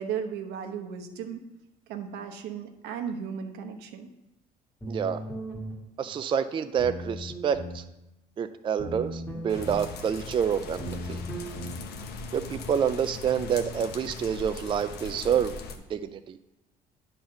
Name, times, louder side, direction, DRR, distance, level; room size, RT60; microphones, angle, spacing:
voice 1, 0.0-1.4 1.9-4.1, right 7 dB, 85° right, 6 dB, 0.9 m, -35 dB
sound 1, 4.8-5.8 6.8-7.8 8.8-9.8 10.8-11.8, right 1 dB, 15° left, 1.8 m, -37 dB
voice 2, 4.9-5.2 6.0-7.8 8.4-11.2 12.3-15.5 15.9-16.4, right 8 dB, 30° right, 10 dB, 0.4 m, -28 dB
sound 2, 9.5-15.8, left 4 dB, 70° left, 0.9 m, -40 dB
9.4 x 4.0 x 5.7 m, 0.91 s
cardioid pair, 110°, 17 cm